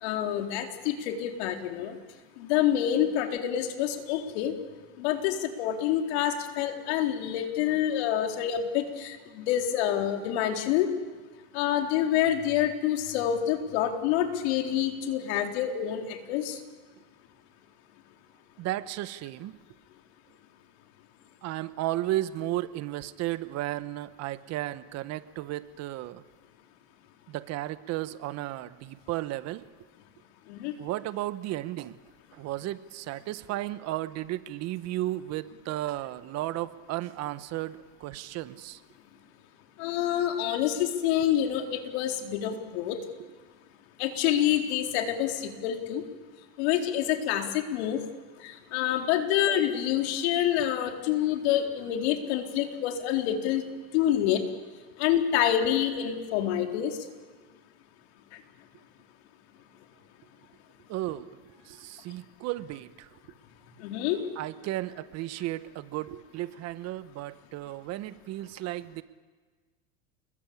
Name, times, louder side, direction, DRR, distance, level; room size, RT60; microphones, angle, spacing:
voice 1, 0.0-2.0 2.4-4.5 5.0-10.9 11.5-16.6 30.5-30.7 39.8-43.0 44.0-46.0 46.6-48.0 48.4-53.6 53.9-54.4 55.0-57.0 63.8-64.2, left 10 dB, 70° left, 4 dB, 4.0 m, -27 dB
voice 2, 18.6-19.6 21.4-26.2 27.3-29.6 30.8-32.0 32.3-38.8 41.2-41.3 60.9-63.1 64.4-69.0, right 15 dB, 50° right, 13 dB, 1.4 m, -34 dB
29.5 x 21.5 x 8.7 m, 1.4 s
supercardioid pair, 110°, 34 cm